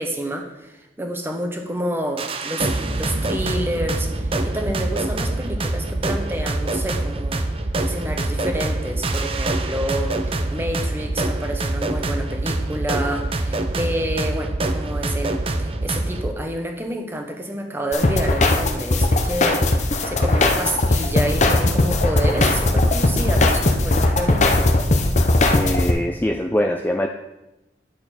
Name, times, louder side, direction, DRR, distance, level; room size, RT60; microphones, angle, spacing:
voice 1, 0.0-2.7 2.9-7.4 7.8-10.1 10.5-15.3 15.6-19.6 20.0-24.6, right 1 dB, 15° right, 3 dB, 1.1 m, -28 dB
sound 1, 2.2-16.3, right 2 dB, 30° right, 0.6 m, -25 dB
sound 2, 17.9-25.9, left 2 dB, 40° left, 0.8 m, -18 dB
voice 2, 25.5-27.1, left 1 dB, 10° left, 3 dB, 0.4 m, -23 dB
10.0 x 6.6 x 4.2 m, 0.96 s
head